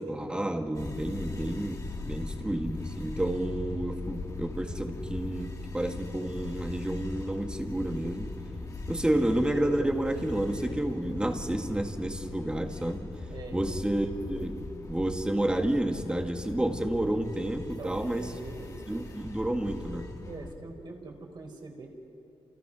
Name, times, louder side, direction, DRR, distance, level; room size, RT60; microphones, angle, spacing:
voice 1, 0.0-8.3 8.9-13.1 13.5-14.6 14.9-18.3 18.9-20.2, right 1 dB, 10° right, 4 dB, 1.8 m, -30 dB
sound 1, 0.7-20.5, left 3 dB, 35° left, 2.1 m, -40 dB
voice 2, 13.3-13.8 17.6-18.8 20.2-21.9, right 3 dB, 50° right, 2 dB, 4.6 m, -44 dB
29.5 x 28.0 x 6.2 m, 2.9 s
wide cardioid pair, 135°, 10 cm